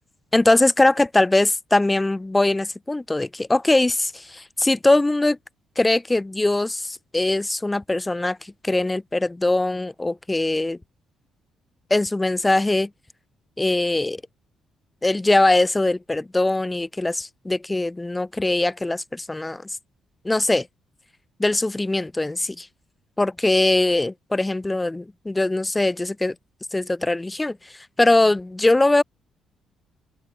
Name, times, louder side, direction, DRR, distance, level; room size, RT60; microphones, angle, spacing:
voice 1, 0.3-5.4 5.7-10.8 11.9-12.9 13.6-14.2 15.0-19.8 20.2-20.7 21.4-22.7 23.2-26.3 26.7-29.0, left 2 dB, 15° left, 1.7 m, -21 dB
open air
cardioid pair, 90°, 0 cm